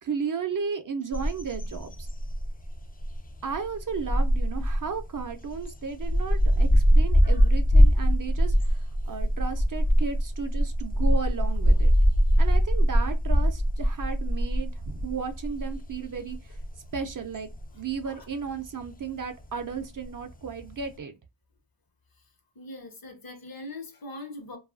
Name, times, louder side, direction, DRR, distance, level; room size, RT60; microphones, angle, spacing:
voice 1, 0.0-2.1 3.4-11.9 12.4-16.6 16.9-17.5 17.7-21.2, right 5 dB, 45° right, 0.5 m, -34 dB
sound 1, 1.1-20.9, equal, 20° left, 0.4 m, -23 dB
voice 2, 22.6-24.6, left 2 dB, 50° left, 0.9 m, -41 dB
2.6 x 2.3 x 2.4 m
wide cardioid pair, 60°, 45 cm